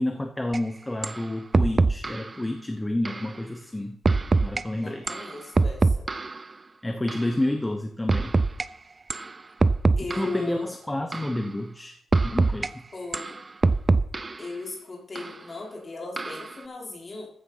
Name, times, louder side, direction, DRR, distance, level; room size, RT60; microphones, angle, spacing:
voice 1, 0.0-4.0 4.4-5.0 6.8-8.3 10.1-12.0 12.2-12.8, left 1 dB, 10° left, 6 dB, 0.8 m, -29 dB
sound 1, 0.5-0.6 1.0-1.2 1.5-2.3 3.1-3.3 4.1-4.6 5.1-6.4 7.1-7.3 8.1-8.7 9.1-9.3 9.6-10.4 11.1-11.4 12.1-12.7 13.1-14.4 15.2-15.3 16.2-16.5, right 3 dB, 25° right, 0.4 m, -23 dB
voice 2, 4.7-6.1 10.0-10.7 12.9-13.4 14.4-17.3, left 3 dB, 30° left, -2 dB, 3.9 m, -37 dB
14.5 x 7.0 x 5.5 m, 0.64 s
wide cardioid pair, 170°, 0 cm